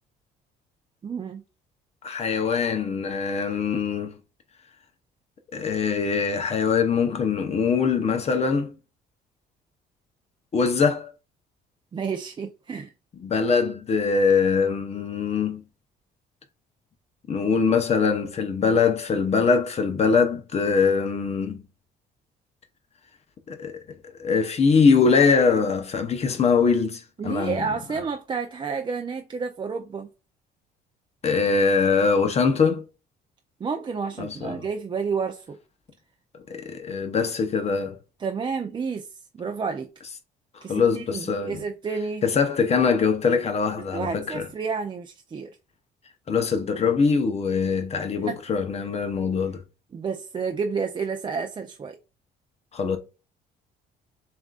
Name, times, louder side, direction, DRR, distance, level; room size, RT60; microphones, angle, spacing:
voice 1, 1.0-1.4 11.9-12.9 27.2-30.1 33.6-35.6 38.2-39.1 39.3-39.9 40.6-42.2 43.9-45.5 48.3-48.4 49.9-52.0, right 5 dB, 25° right, 0.5 m, -30 dB
voice 2, 2.0-4.1 5.5-8.7 10.5-11.1 13.2-15.6 17.3-21.6 23.5-27.7 31.2-32.8 34.2-34.7 36.5-38.0 40.7-41.6 42.2-44.5 46.3-49.6 52.7-53.0, left 5 dB, 40° left, 0.8 m, -22 dB
7.0 x 2.6 x 2.4 m
cardioid pair, 110°, 17 cm